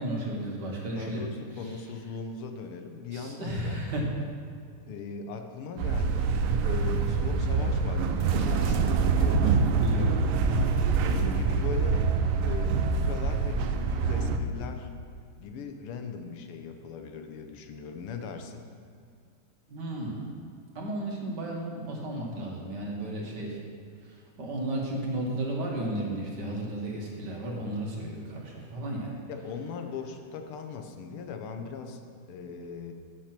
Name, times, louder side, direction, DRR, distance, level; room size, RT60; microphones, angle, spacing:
voice 1, 0.0-1.3 3.1-4.1 9.7-10.8 19.7-20.3 20.8-23.6 24.4-29.2, right 1 dB, 55° right, -2 dB, 1.9 m, -33 dB
voice 2, 0.9-3.8 4.9-6.4 6.6-9.7 11.0-12.1 12.4-14.9 15.4-18.7 29.3-32.0 32.3-32.9, left 5 dB, 85° left, 6 dB, 1.7 m, -39 dB
sound 1, 5.8-14.4, right 5 dB, 80° right, 1.5 m, -25 dB
9.8 x 6.5 x 5.9 m, 2.2 s
omnidirectional pair, 2.4 m